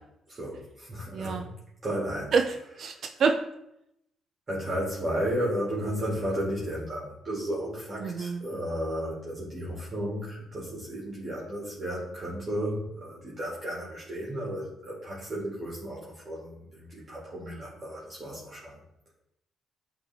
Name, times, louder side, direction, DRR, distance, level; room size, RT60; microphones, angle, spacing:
voice 1, 0.3-1.5 1.8-2.3 2.9-3.1 4.5-18.8, equal, 35° right, -6 dB, 2.2 m, -33 dB
voice 2, 1.1-1.4 2.3-3.4 8.0-8.4, right 5 dB, 60° right, 5 dB, 0.4 m, -27 dB
8.7 x 3.3 x 3.5 m, 0.80 s
cardioid pair, 90°, 0 cm